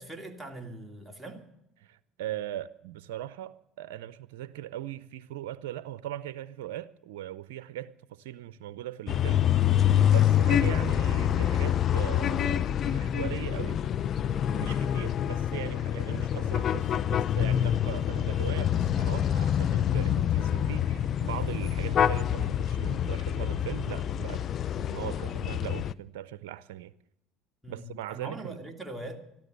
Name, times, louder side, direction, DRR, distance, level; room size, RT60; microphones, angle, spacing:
voice 1, 0.0-1.5 27.6-29.2, right 1 dB, 5° right, 2.6 m, -41 dB
voice 2, 1.8-9.8 10.1-13.8 14.5-24.5 24.8-26.9 27.7-28.6, right 12 dB, 85° right, 0.5 m, -39 dB
sound 1, 9.1-25.9, left 10 dB, 50° left, 0.5 m, -26 dB
13.0 x 12.5 x 8.0 m
supercardioid pair, 85°, 0 cm